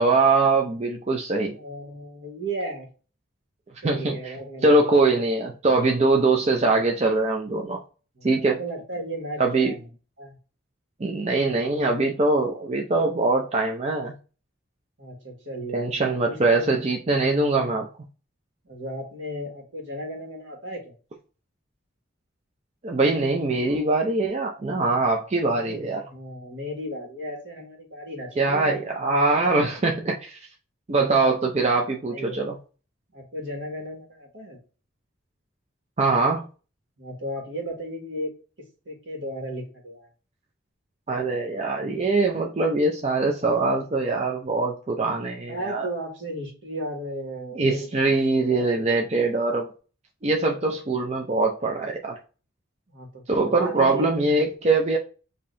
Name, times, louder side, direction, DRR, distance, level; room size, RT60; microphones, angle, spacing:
voice 1, 0.0-1.6 3.8-4.4 4.6-7.8 8.2-8.6 9.4-9.7 11.0-14.1 15.7-17.9 22.8-26.0 28.4-30.5 30.9-32.6 36.0-36.5 41.1-45.9 47.5-49.7 50.2-52.2 53.3-55.0, right 3 dB, 35° right, 0.5 m, -22 dB
voice 2, 1.5-2.9 3.8-4.8 8.1-9.9 10.2-10.4 15.0-16.8 18.6-20.8 25.6-28.8 29.5-29.6 31.9-32.5 33.1-34.6 37.0-38.3 38.8-40.1 45.4-47.9 48.4-48.9 52.9-54.1, right 1 dB, 70° right, 1.7 m, -35 dB
5.0 x 2.8 x 2.6 m
head